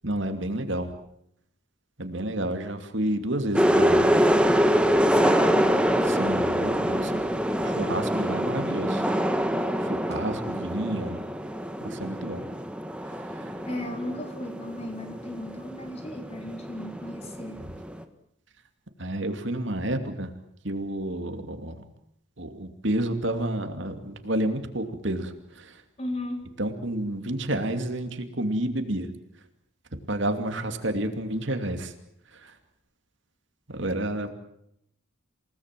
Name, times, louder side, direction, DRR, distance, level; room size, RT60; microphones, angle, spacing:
voice 1, 0.0-0.9 2.0-4.1 6.1-7.2 7.6-9.1 9.8-11.3 11.8-12.4 13.0-13.6 19.0-20.3 20.6-21.8 22.4-25.8 26.6-29.1 30.1-31.9 32.3-32.6 33.7-34.3, right 1 dB, 60° right, 7 dB, 2.7 m, -30 dB
sound 1, 3.5-18.0, equal, 5° right, 1.4 m, -25 dB
voice 2, 5.1-5.8 13.6-17.6 26.0-26.5, left 1 dB, 30° left, 5 dB, 3.7 m, -35 dB
28.5 x 18.5 x 7.6 m, 0.75 s
head